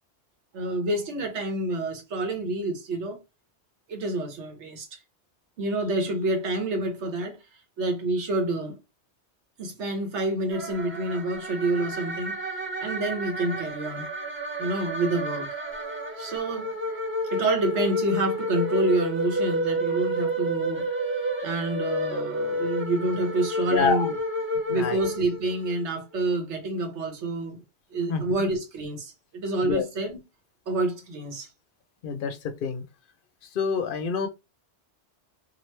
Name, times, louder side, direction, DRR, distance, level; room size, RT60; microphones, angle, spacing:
voice 1, 0.5-3.2 3.9-5.0 5.6-7.4 7.8-8.8 9.6-14.0 14.6-15.6 16.2-16.7 17.3-24.1 24.7-27.6 27.9-30.2 30.7-31.5, right 2 dB, 80° right, 1.2 m, -28 dB
sound 1, 10.5-25.8, equal, 15° right, 0.5 m, -30 dB
voice 2, 23.7-24.1 24.7-25.0 28.1-28.2 29.6-29.9 32.0-32.8 33.5-34.3, left 5 dB, 60° left, 0.7 m, -27 dB
2.9 x 2.5 x 3.1 m
omnidirectional pair, 1.2 m